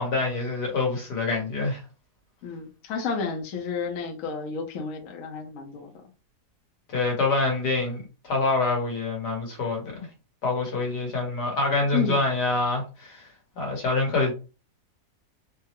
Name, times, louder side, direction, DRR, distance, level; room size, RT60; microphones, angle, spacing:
voice 1, 0.0-1.8 6.9-10.1 10.4-13.3 13.6-14.3, left 3 dB, 85° left, 1.8 m, -26 dB
voice 2, 2.4-5.9 11.9-12.2, left 5 dB, 60° left, 1.0 m, -31 dB
3.5 x 2.0 x 2.8 m
omnidirectional pair, 1.7 m